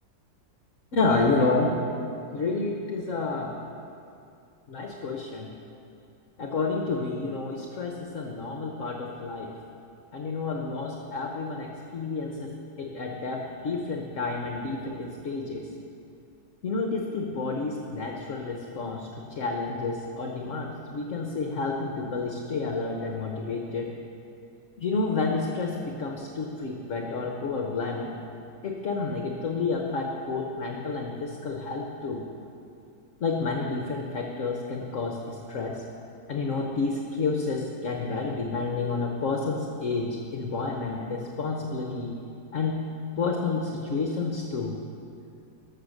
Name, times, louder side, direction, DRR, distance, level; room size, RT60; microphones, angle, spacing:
voice 1, 0.9-1.7 2.3-3.6 4.7-5.5 6.4-9.5 10.1-15.7 16.6-23.9 24.8-28.2 28.6-32.2 33.2-35.8 36.3-42.2 42.5-42.8 43.2-44.7, left 3 dB, 50° left, 1 dB, 1.1 m, -30 dB
13.0 x 6.6 x 6.5 m, 2.6 s
omnidirectional pair, 2.0 m